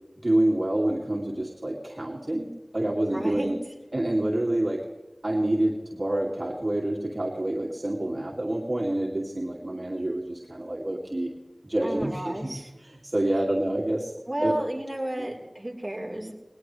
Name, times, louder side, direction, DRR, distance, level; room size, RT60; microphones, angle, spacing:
voice 1, 0.2-3.5 3.9-4.8 5.2-11.3 11.6-14.1 14.4-14.5 15.2-15.3, right 1 dB, 45° right, -3 dB, 2.4 m, -27 dB
voice 2, 3.1-3.6 11.8-12.7 14.3-16.3, right 1 dB, 15° right, -1 dB, 4.2 m, -32 dB
19.5 x 19.5 x 3.3 m, 1.1 s
wide cardioid pair, 45°, 0 cm